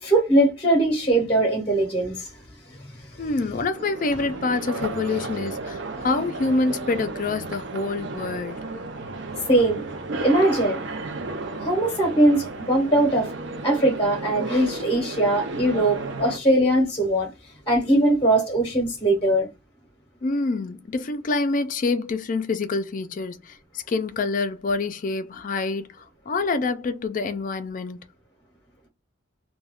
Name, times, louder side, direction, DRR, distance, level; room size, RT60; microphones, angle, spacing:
voice 1, 0.0-2.3 2.8-3.3 9.5-9.8 10.2-10.8 11.6-13.3 13.6-17.3 17.7-19.5, right 1 dB, 25° left, 0.7 m, -21 dB
voice 2, 3.2-8.6 20.2-25.9 26.3-28.0, left 3 dB, 40° left, 0.3 m, -26 dB
sound 1, 3.7-16.4, right 3 dB, 60° right, 0.5 m, -33 dB
2.3 x 2.2 x 3.4 m
head